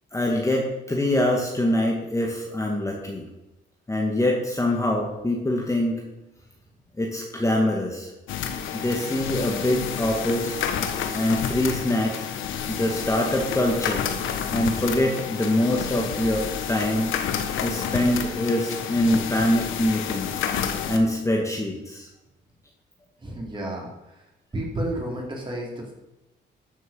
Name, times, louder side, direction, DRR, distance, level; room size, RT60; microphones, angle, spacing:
voice 1, 0.1-3.3 3.9-6.0 7.0-8.1 8.7-10.6 11.1-12.3 12.7-14.1 14.5-17.1 17.6-20.5 20.9-22.1, left 1 dB, 15° left, -1 dB, 1.9 m, -24 dB
sound 1, 8.3-21.0, left 8 dB, 80° left, 1.3 m, -30 dB
voice 2, 23.2-24.2 24.5-25.9, right 1 dB, 25° right, -2 dB, 4.3 m, -31 dB
13.0 x 6.4 x 5.6 m, 0.98 s
cardioid pair, 90°, 20 cm